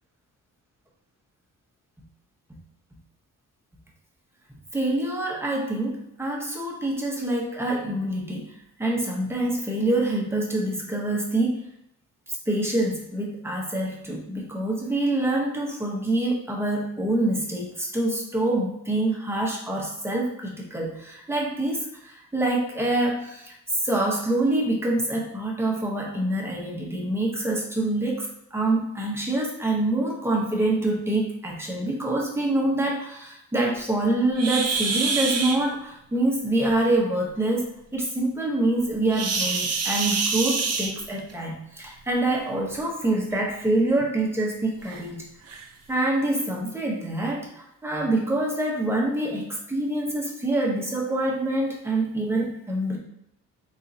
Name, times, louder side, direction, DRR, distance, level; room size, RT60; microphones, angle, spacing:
voice 1, 4.7-11.6 12.3-23.6 23.8-45.3 45.9-53.0, right 1 dB, 10° right, -2 dB, 0.8 m, -26 dB
sound 1, 34.3-35.6 39.1-41.3 42.6-42.8 43.3-43.4 44.0-44.1 44.9-45.0 45.5-45.7, right 4 dB, 50° right, 0.6 m, -26 dB
4.0 x 3.6 x 2.6 m, 0.79 s
cardioid pair, 140°, 32 cm